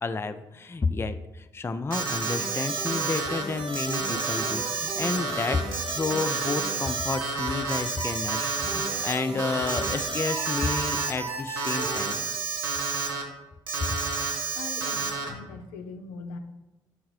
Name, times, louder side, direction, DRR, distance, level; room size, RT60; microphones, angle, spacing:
voice 1, 0.0-5.6 5.9-12.2, left 4 dB, 20° left, 10 dB, 0.4 m, -31 dB
Alarm, 1.9-3.4 3.7-9.1 9.4-11.1 11.6-13.2 13.7-15.3, right 4 dB, 90° right, 0.6 m, -30 dB
sound 1, 2.3-12.1, right 2 dB, 55° right, 1.4 m, -35 dB
voice 2, 14.5-16.4, left 4 dB, 75° left, 6 dB, 0.5 m, -40 dB
5.6 x 3.6 x 4.7 m, 1.0 s
hypercardioid pair, 40°, 11 cm